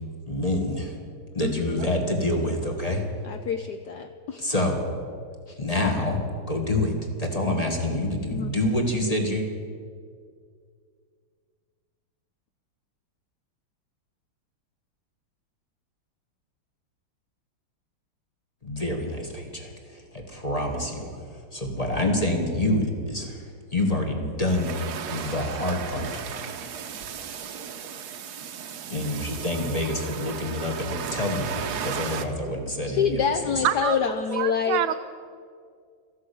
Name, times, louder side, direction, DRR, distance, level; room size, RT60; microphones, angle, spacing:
voice 1, 0.3-1.0 1.3-3.0 4.4-4.8 5.6-6.2 6.5-6.9 7.2-9.4 18.6-21.1 21.5-24.7 25.1-26.1 28.9-33.2, left 1 dB, 20° left, 2 dB, 1.5 m, -27 dB
voice 2, 1.4-1.8 3.2-4.5 5.5-5.6 8.3-8.5 32.8-34.9, left 7 dB, 75° left, 8 dB, 0.9 m, -27 dB
sound 1, 24.5-32.3, right 8 dB, 60° right, 1.2 m, -35 dB
voice 3, 33.6-34.0 34.3-34.9, right 12 dB, 80° right, 11 dB, 1.6 m, -26 dB
14.0 x 11.5 x 8.3 m, 2.2 s
omnidirectional pair, 2.4 m